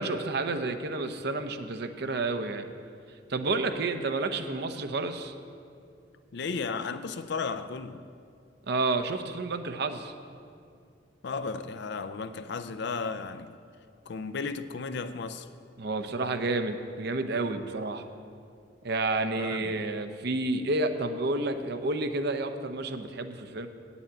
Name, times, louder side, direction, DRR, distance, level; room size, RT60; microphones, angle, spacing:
voice 1, 0.0-2.7 3.3-5.3 8.7-10.1 15.8-18.0 18.8-23.7, right 2 dB, 60° right, 0.7 m, -30 dB
voice 2, 6.3-8.1 11.2-13.5 14.1-15.5 19.3-19.8, left 4 dB, 60° left, 0.5 m, -34 dB
9.1 x 7.1 x 8.6 m
head